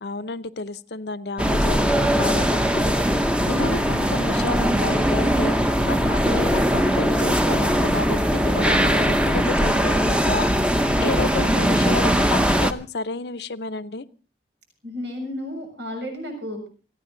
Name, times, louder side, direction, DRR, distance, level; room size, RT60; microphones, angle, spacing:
voice 1, 0.0-2.4 2.7-2.9 3.5-10.7 11.0-14.1, left 3 dB, 75° left, 15 dB, 0.8 m, -31 dB
sound 1, 1.4-12.7, equal, 5° right, 0.8 m, -20 dB
voice 2, 14.8-16.7, left 1 dB, 85° right, 3 dB, 7.3 m, -32 dB
28.0 x 9.9 x 3.9 m, 0.36 s
head